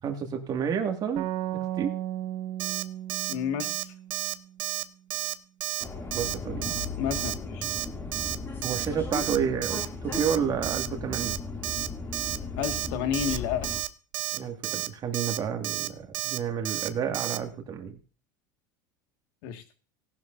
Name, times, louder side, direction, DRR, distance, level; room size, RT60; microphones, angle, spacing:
voice 1, 0.0-1.9 6.1-6.7 8.6-11.4 14.3-18.0, right 7 dB, 35° right, 4 dB, 2.1 m, -30 dB
sound 1, 1.2-4.7, right 13 dB, 55° right, 1.5 m, -35 dB
Alarm, 2.6-2.8 3.1-3.3 3.6-3.8 4.1-4.3 4.6-4.8 5.1-5.3 5.6-5.8 6.1-6.3 6.6-6.9 7.1-7.3 7.6-7.8 8.1-8.4 8.6-8.9 9.1-9.4 9.6-9.9 10.1-10.4 10.6-10.9 11.1-11.4 11.6-11.9 12.1-12.4 12.6-12.9 13.1-13.4 13.6-13.9 14.1-14.4 14.6-14.9 15.1-15.4 15.6-15.9 16.1-16.4 16.6-16.9 17.1-17.4, right 18 dB, 85° right, 0.8 m, -31 dB
voice 2, 3.3-3.7 7.0-7.6 12.6-13.8 19.4-19.6, left 9 dB, 70° left, 6 dB, 1.9 m, -31 dB
Subway metro underground, 5.8-13.8, left 3 dB, 20° left, 2.6 m, -36 dB
18.0 x 11.0 x 2.6 m, 0.36 s
supercardioid pair, 125°, 11 cm